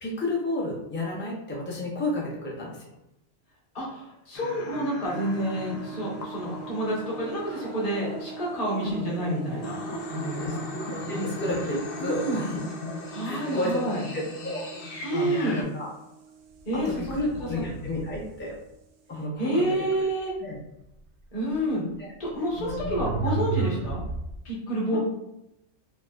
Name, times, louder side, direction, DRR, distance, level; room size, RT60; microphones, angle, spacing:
voice 1, 0.0-2.9 8.8-9.0 10.3-12.6 13.2-13.8 14.1-15.9 16.7-18.6 19.1-20.1 20.4-20.6 22.0-22.1 22.6-23.0 23.2-23.4 24.9-25.0, left 1 dB, 20° left, -3 dB, 0.3 m, -32 dB
voice 2, 3.7-9.8 10.1-10.6 11.1-11.3 12.0-12.4 13.1-14.0 15.0-15.6 16.7-17.1 17.4-17.5 19.4-20.3 21.3-21.8 22.2-24.0 24.4-25.0, right 1 dB, 35° left, -5 dB, 1.0 m, -29 dB
sound 1, 4.3-15.6, left 2 dB, 70° left, 0.8 m, -38 dB
sound 2, 5.0-19.2, right 6 dB, 85° right, 0.9 m, -43 dB
sound 3, 16.7-18.4 21.5-21.6 22.5-24.4, right 4 dB, 60° right, 0.6 m, -32 dB
4.4 x 2.0 x 2.2 m, 0.86 s
omnidirectional pair, 1.2 m